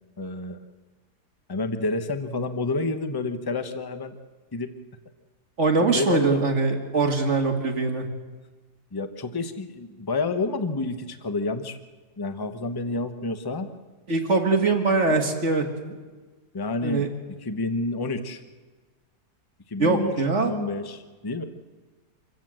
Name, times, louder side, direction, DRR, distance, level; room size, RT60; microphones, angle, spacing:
voice 1, 0.2-0.6 1.5-4.1 4.5-4.7 5.9-6.4 8.9-11.8 12.2-13.7 15.1-15.2 16.5-17.0 17.4-18.4 19.7-20.1 20.4-21.4, left 3 dB, 20° left, 9 dB, 0.8 m, -29 dB
voice 2, 5.6-8.1 14.1-15.9 16.8-17.1 19.8-20.6, right 3 dB, 45° right, 3 dB, 2.2 m, -22 dB
25.5 x 16.0 x 7.6 m, 1.3 s
omnidirectional pair, 1.8 m